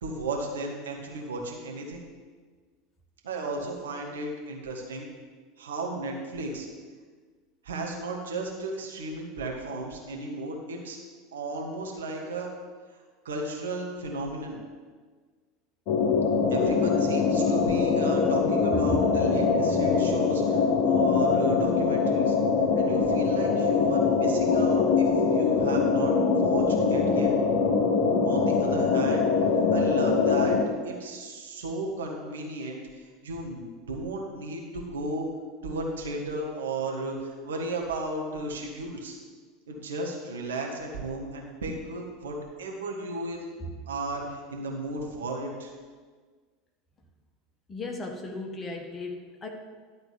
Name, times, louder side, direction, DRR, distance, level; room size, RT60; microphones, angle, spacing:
voice 1, 0.0-2.0 3.2-5.1 5.6-6.7 7.6-11.0 11.3-12.5 13.2-14.6 16.5-22.4 22.7-26.1 26.4-27.3 28.2-29.3 29.7-30.6 30.8-35.3 35.6-39.2 39.7-43.4 43.9-45.7, right 2 dB, 70° right, 0 dB, 1.5 m, -34 dB
sound 1, 15.9-30.7, left 5 dB, 50° left, 1.0 m, -23 dB
voice 2, 47.7-49.5, left 1 dB, 25° left, 2 dB, 1.4 m, -36 dB
11.5 x 3.9 x 7.2 m, 1.5 s
figure-of-eight pair, 80°, 0 cm